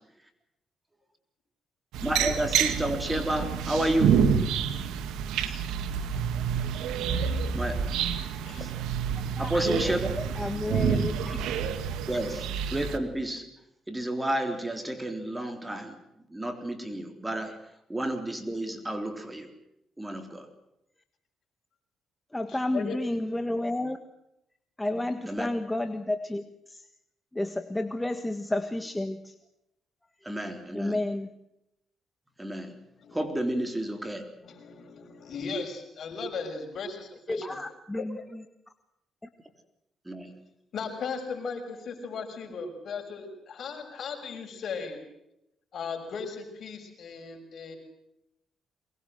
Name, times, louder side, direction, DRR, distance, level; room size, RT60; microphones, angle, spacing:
sound 1, 1.9-13.0, right 7 dB, 85° right, 2.0 m, -28 dB
voice 1, 2.0-4.3 7.5-7.9 8.6-8.7 9.4-10.1 12.1-13.5 13.9-16.0 16.3-17.6 17.9-19.5 20.0-20.5 25.3-25.5 30.2-31.0 32.4-32.8 33.1-34.3 40.1-40.3, right 1 dB, 10° right, 7 dB, 3.7 m, -31 dB
voice 2, 9.4-11.4 12.1-12.2 17.5-17.6 22.3-24.0 24.8-26.9 27.3-29.3 30.7-31.3 37.3-38.4 39.2-39.3, left 1 dB, 10° left, 9 dB, 1.4 m, -31 dB
voice 3, 22.5-23.0 33.0-33.2 34.4-37.6 40.7-45.0 45.7-47.8, left 5 dB, 60° left, 5 dB, 6.3 m, -37 dB
23.5 x 20.5 x 7.9 m, 0.83 s
cardioid pair, 90°, 0 cm